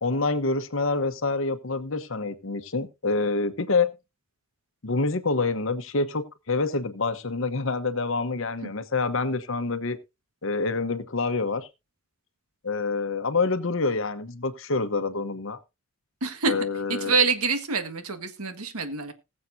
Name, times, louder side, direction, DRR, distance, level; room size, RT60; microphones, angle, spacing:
voice 1, 0.0-3.9 4.8-10.0 10.4-11.7 12.6-15.6 16.5-17.2, left 3 dB, 65° left, 1.0 m, -27 dB
voice 2, 16.2-16.5 16.9-19.1, right 4 dB, 90° right, 1.6 m, -26 dB
20.0 x 7.4 x 2.7 m
head